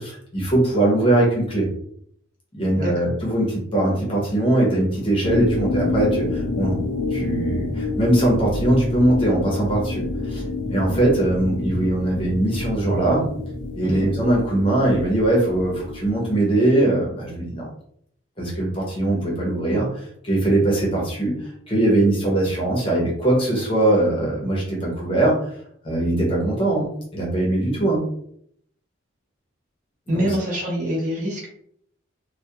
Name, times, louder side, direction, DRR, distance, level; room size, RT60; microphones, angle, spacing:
voice 1, 0.0-1.7 2.5-6.8 7.1-10.4 10.7-13.3 13.8-17.7 18.4-25.5 25.8-28.0 30.1-30.3, right 1 dB, 25° left, -3 dB, 0.7 m, -21 dB
sound 1, 5.2-16.1, left 2 dB, 70° left, 0.4 m, -28 dB
voice 2, 30.1-31.5, equal, 40° right, -3 dB, 0.8 m, -25 dB
2.2 x 2.2 x 2.7 m, 0.67 s
head